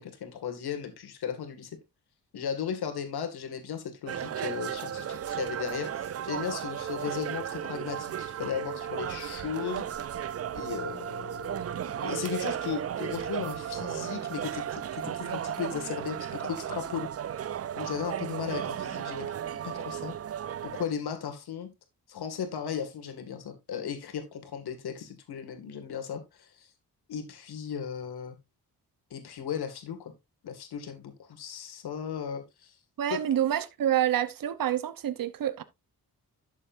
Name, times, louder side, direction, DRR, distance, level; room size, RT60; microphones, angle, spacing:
voice 1, 0.0-1.7 2.3-10.1 10.5-17.1 17.8-19.4 19.6-20.1 20.6-21.7 22.1-26.7 27.1-28.4 29.1-30.1 30.4-32.8 33.1-33.2, left 7 dB, 90° left, 2.2 m, -36 dB
sound 1, 4.1-20.9, right 9 dB, 40° right, 0.4 m, -35 dB
voice 2, 33.0-35.6, right 11 dB, 60° right, 0.9 m, -27 dB
11.5 x 7.3 x 2.6 m
cardioid pair, 95°, 37 cm